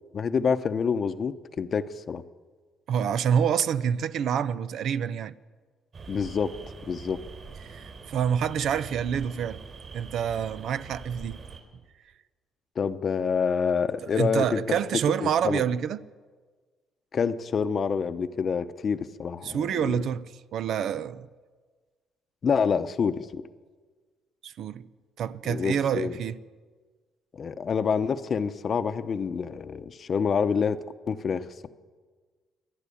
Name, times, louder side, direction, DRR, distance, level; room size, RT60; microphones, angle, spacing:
voice 1, 0.1-2.2 6.1-6.5 6.9-7.2 12.8-14.8 15.2-15.6 17.1-20.0 22.4-23.4 25.4-26.1 27.3-31.7, left 6 dB, 40° left, 0.9 m, -27 dB
voice 2, 2.9-5.3 7.6-9.6 9.9-11.4 14.1-16.0 19.4-21.3 24.4-24.9 25.2-26.4, right 8 dB, 65° right, 0.7 m, -27 dB
sound 1, 5.9-11.6, right 5 dB, 45° right, 3.5 m, -44 dB
27.5 x 11.5 x 8.6 m
cardioid pair, 130°, 0 cm